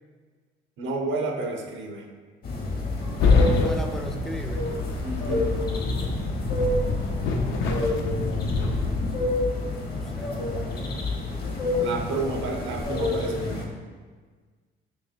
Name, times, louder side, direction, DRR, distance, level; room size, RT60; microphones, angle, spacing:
voice 1, 0.8-2.1 5.0-5.5 11.8-13.7, right 3 dB, 70° right, 2 dB, 0.6 m, -30 dB
sound 1, 2.4-13.7, left 2 dB, 50° left, 0.7 m, -29 dB
sound 2, 3.2-9.0, left 3 dB, 90° left, 0.5 m, -26 dB
voice 2, 3.4-4.8 7.3-7.8 9.8-11.1, equal, ahead, 4 dB, 0.3 m, -37 dB
3.1 x 2.9 x 4.0 m, 1.5 s
cardioid pair, 90°, 20 cm